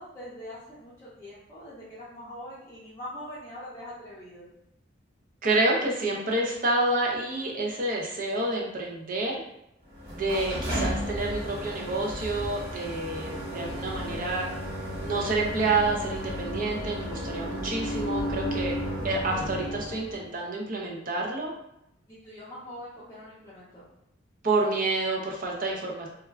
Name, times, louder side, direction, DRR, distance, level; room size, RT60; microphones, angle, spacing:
voice 1, 0.0-4.5 22.1-23.9, left 1 dB, 15° left, -10 dB, 0.5 m, -43 dB
voice 2, 5.4-9.4 10.1-14.4 15.0-18.8 19.0-21.5 24.4-26.1, right 2 dB, 45° right, -1 dB, 0.5 m, -28 dB
sound 1, 9.9-20.2, equal, 30° right, 1.0 m, -33 dB
2.3 x 2.2 x 3.2 m, 0.83 s
head